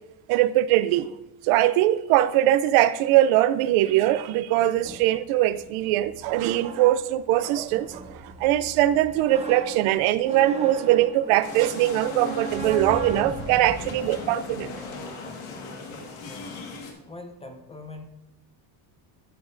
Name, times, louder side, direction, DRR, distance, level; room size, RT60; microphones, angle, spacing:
voice 1, 0.3-1.1 1.5-14.7, right 14 dB, 80° right, 15 dB, 0.6 m, -21 dB
sound 1, 4.8-14.7, right 2 dB, 15° right, 0.8 m, -38 dB
sound 2, 11.4-16.9, left 3 dB, 70° left, 1.8 m, -37 dB
voice 2, 12.9-13.2 16.2-16.6 17.1-18.0, left 2 dB, 10° left, 5 dB, 0.6 m, -42 dB
13.5 x 7.1 x 2.6 m, 0.92 s
cardioid pair, 160°, 50 cm